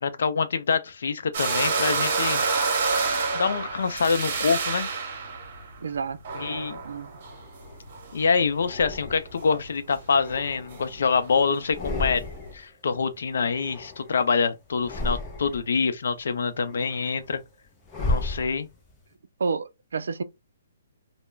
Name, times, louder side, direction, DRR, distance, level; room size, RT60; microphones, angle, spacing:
voice 1, 0.0-2.4 3.3-4.9 6.3-6.8 8.1-12.2 12.5-17.4 18.0-18.7, left 5 dB, 70° left, 0.4 m, -25 dB
sound 1, 1.3-8.5 8.7-9.7 9.9-10.0 10.2-12.5, right 4 dB, 45° right, 0.9 m, -28 dB
voice 2, 5.8-6.2 6.8-7.1 19.4-20.2, right 5 dB, 80° right, 0.4 m, -29 dB
sound 2, 6.7-7.9 8.6-9.5 10.0-11.2 11.6-12.7 12.9-14.3 14.7-15.8 16.2-19.0, left 2 dB, 10° left, 0.6 m, -34 dB
2.3 x 2.0 x 3.1 m
hypercardioid pair, 160°, 0 cm